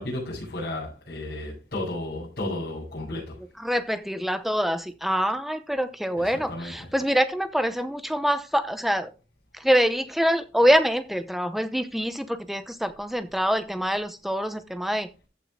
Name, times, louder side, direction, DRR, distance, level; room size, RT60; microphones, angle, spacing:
voice 1, 0.0-3.4 6.2-6.9, left 1 dB, 60° left, 6.3 m, -33 dB
voice 2, 3.6-9.1 9.5-15.1, equal, ahead, 0.7 m, -25 dB
14.5 x 5.7 x 3.6 m
head